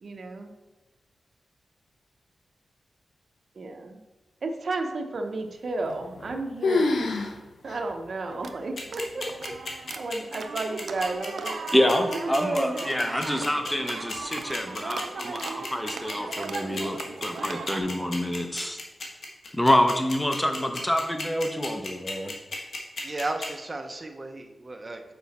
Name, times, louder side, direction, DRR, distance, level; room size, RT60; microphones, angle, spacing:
voice 1, 0.0-0.5 3.5-4.0 4.4-7.4 7.6-9.5 10.0-11.6 12.1-12.8, right 2 dB, 60° right, 4 dB, 0.8 m, -32 dB
sound 1, 5.8-6.3 6.6-7.3 7.7-7.8 8.5-8.6 9.3-9.7, left 3 dB, 80° left, 0.6 m, -26 dB
sound 2, 8.3-17.8, right 5 dB, 85° right, 0.4 m, -38 dB
sound 3, 8.8-23.5, left 3 dB, 65° left, 1.2 m, -34 dB
voice 2, 11.7-18.8 19.5-22.3, left 1 dB, 15° left, 5 dB, 0.7 m, -26 dB
voice 3, 23.0-25.1, right 2 dB, 30° right, 5 dB, 0.7 m, -34 dB
6.2 x 4.8 x 4.2 m, 1.1 s
wide cardioid pair, 90°, 0 cm